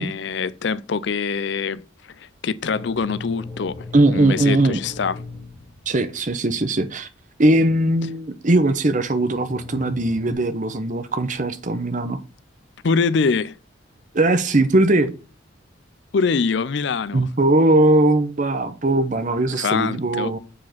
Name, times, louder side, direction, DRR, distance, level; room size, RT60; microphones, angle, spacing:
voice 1, 0.0-3.8 4.1-5.2 12.8-13.6 16.1-17.3 19.6-20.3, left 5 dB, 55° left, 0.4 m, -24 dB
sound 1, 2.6-6.6 8.7-8.8 9.3-10.3, left 3 dB, 5° left, 2.3 m, -38 dB
voice 2, 3.9-4.8 5.9-7.1 7.4-12.2 14.1-15.1 17.1-20.4, right 2 dB, 40° right, 0.8 m, -19 dB
7.4 x 5.0 x 5.9 m
head